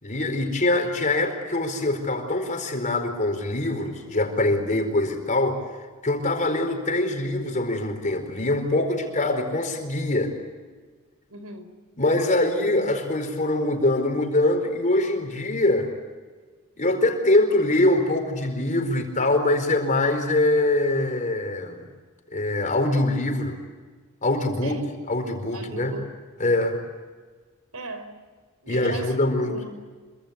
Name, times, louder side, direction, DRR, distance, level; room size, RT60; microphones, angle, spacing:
voice 1, 0.0-5.6 6.0-10.3 12.0-15.9 16.8-21.8 22.3-23.5 24.2-24.8 25.1-26.0 26.4-26.8 28.7-29.5, left 2 dB, 35° left, 4 dB, 4.6 m, -23 dB
voice 2, 11.3-11.7 24.6-24.9 25.5-26.1 27.7-28.2 28.6-29.9, right 3 dB, 75° right, 10 dB, 4.7 m, -38 dB
27.0 x 25.0 x 8.2 m, 1.4 s
head